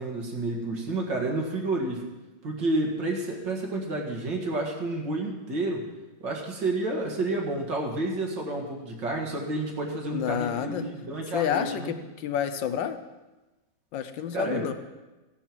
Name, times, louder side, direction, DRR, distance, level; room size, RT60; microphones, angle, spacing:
voice 1, 0.0-2.1 2.4-5.9 6.2-11.9 14.3-14.7, right 2 dB, 70° right, 0 dB, 2.5 m, -30 dB
voice 2, 10.1-10.9 11.3-13.0 13.9-14.7, left 9 dB, 75° left, 10 dB, 1.5 m, -29 dB
15.5 x 11.5 x 4.6 m, 1.1 s
omnidirectional pair, 2.1 m